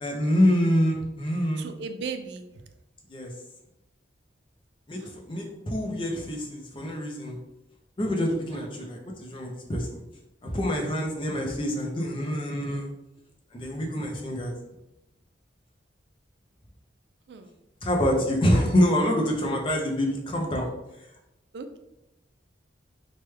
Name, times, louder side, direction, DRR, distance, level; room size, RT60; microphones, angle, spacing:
voice 1, 0.0-1.7 3.1-3.3 4.9-7.3 8.0-10.0 10.4-12.9 13.5-14.5 17.8-20.7, equal, 30° left, 0 dB, 0.5 m, -26 dB
voice 2, 1.6-2.5 5.0-5.1 8.5-8.8 17.3-17.5 21.5-21.8, right 5 dB, 65° right, 8 dB, 0.3 m, -37 dB
3.2 x 2.2 x 3.2 m, 0.92 s
head